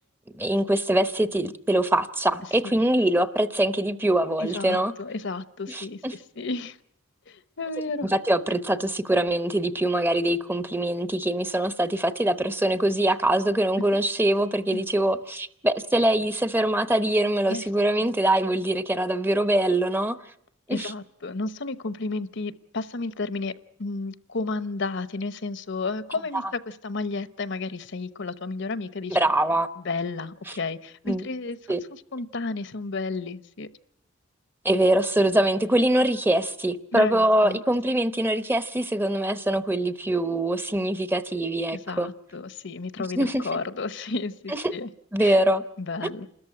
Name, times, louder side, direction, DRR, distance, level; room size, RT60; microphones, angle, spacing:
voice 1, 0.4-4.9 5.7-6.1 8.1-20.2 20.7-20.9 29.1-29.7 31.1-31.2 31.7-31.8 34.6-42.1 43.2-43.4 44.5-44.7 45.1-45.6, right 1 dB, 10° right, 0.8 m, -23 dB
voice 2, 4.4-6.8 7.3-8.1 13.9-14.0 14.7-14.8 17.5-17.6 18.0-18.1 20.7-23.5 23.8-29.2 29.8-31.6 31.9-33.7 36.9-37.6 41.7-44.9 45.2-45.4 45.8-46.3, left 3 dB, 60° left, 1.0 m, -32 dB
29.0 x 13.5 x 10.0 m
head